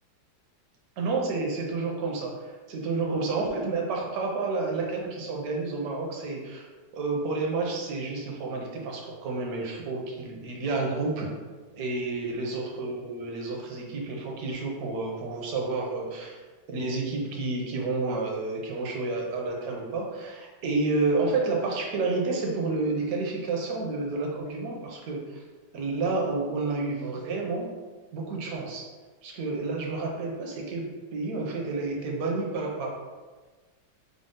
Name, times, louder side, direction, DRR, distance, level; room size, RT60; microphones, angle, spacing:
voice 1, 1.0-6.7 6.9-11.3 11.7-16.4 16.7-25.4 25.7-27.7 28.1-28.9 29.2-32.9, right 3 dB, 70° right, 0 dB, 0.9 m, -30 dB
5.0 x 2.1 x 3.7 m, 1.3 s
omnidirectional pair, 2.3 m